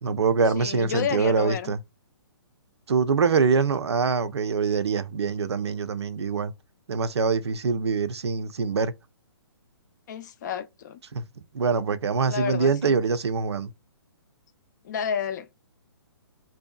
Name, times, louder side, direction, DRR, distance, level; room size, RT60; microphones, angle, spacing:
voice 1, 0.0-1.8 2.9-6.5 6.9-8.9 11.1-11.2 11.5-13.7, right 5 dB, 80° right, 0.5 m, -24 dB
voice 2, 0.6-1.7 10.1-11.0 12.3-13.0 14.8-15.5, left 8 dB, 45° left, 0.4 m, -30 dB
2.7 x 2.2 x 2.2 m
hypercardioid pair, 140°, 14 cm